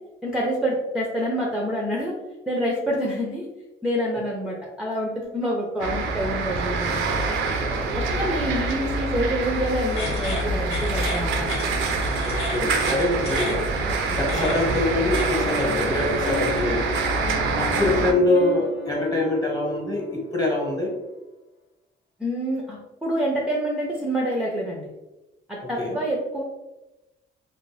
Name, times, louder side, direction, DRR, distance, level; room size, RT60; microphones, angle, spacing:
voice 1, 0.2-2.2 2.5-3.5 3.8-7.2 8.0-11.5 22.2-24.9 25.5-26.4, equal, 5° right, -3 dB, 0.5 m, -27 dB
sound 1, 5.8-18.1, right 3 dB, 80° right, 0.5 m, -26 dB
voice 2, 7.8-8.3 12.2-13.6 14.1-16.9 17.6-20.9 25.6-26.0, left 2 dB, 20° left, -2 dB, 1.0 m, -24 dB
sound 2, 9.9-16.8, left 1 dB, 85° left, 1.1 m, -34 dB
Piano, 15.4-20.7, left 3 dB, 65° left, 0.5 m, -34 dB
2.5 x 2.0 x 3.2 m, 1.0 s
cardioid pair, 90°, 20 cm